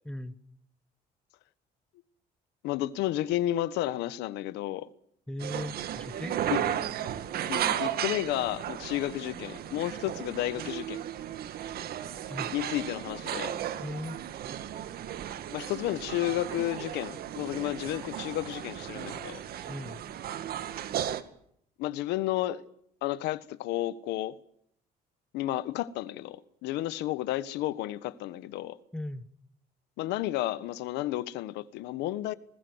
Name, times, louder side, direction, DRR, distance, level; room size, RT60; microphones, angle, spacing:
voice 1, 0.0-0.3 5.3-6.7 12.3-12.5 13.8-14.2 19.7-20.0 28.9-29.3, left 1 dB, 5° left, 1.6 m, -38 dB
voice 2, 2.6-4.9 6.5-6.6 7.1-11.0 12.5-13.5 15.5-19.4 21.8-22.6 23.0-24.4 25.3-28.8 30.0-32.3, left 14 dB, 90° left, 1.3 m, -32 dB
sound 1, 5.4-21.2, right 10 dB, 65° right, 2.0 m, -35 dB
28.0 x 20.0 x 8.1 m
cardioid pair, 110°, 17 cm